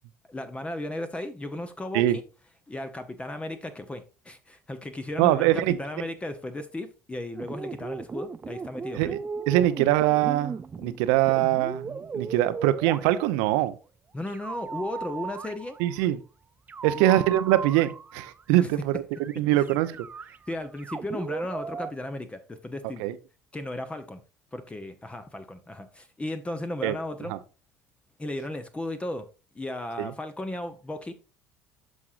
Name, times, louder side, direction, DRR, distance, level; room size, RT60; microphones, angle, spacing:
voice 1, 0.3-2.2 2.7-9.2 14.1-15.8 16.9-17.1 18.6-18.7 19.6-19.7 20.5-23.0 23.5-24.2 24.5-27.3 28.2-29.3 29.5-31.1, left 1 dB, 15° left, 0.8 m, -35 dB
voice 2, 5.2-5.8 8.9-9.2 9.5-10.5 10.8-13.7 15.8-16.2 16.8-20.1 23.0-23.1 26.8-26.9 27.3-27.4 30.0-30.1, right 14 dB, 65° right, 0.6 m, -23 dB
sound 1, 7.4-13.6 14.3-16.1 16.7-18.4 19.1-19.4 19.7-21.9, right 5 dB, 20° right, 0.4 m, -37 dB
12.5 x 4.8 x 2.5 m
figure-of-eight pair, 60°, 8 cm